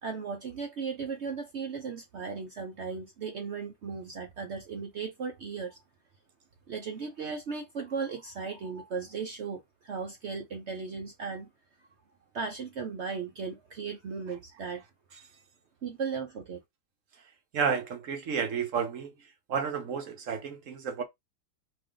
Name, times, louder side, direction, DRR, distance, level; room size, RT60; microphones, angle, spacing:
voice 1, 0.0-5.8 6.7-11.5 12.3-14.8 15.8-16.6, right 5 dB, 80° right, 0.6 m, -36 dB
voice 2, 17.5-19.1 19.5-21.0, right 6 dB, 60° right, 0.9 m, -31 dB
4.4 x 2.6 x 3.8 m
omnidirectional pair, 2.0 m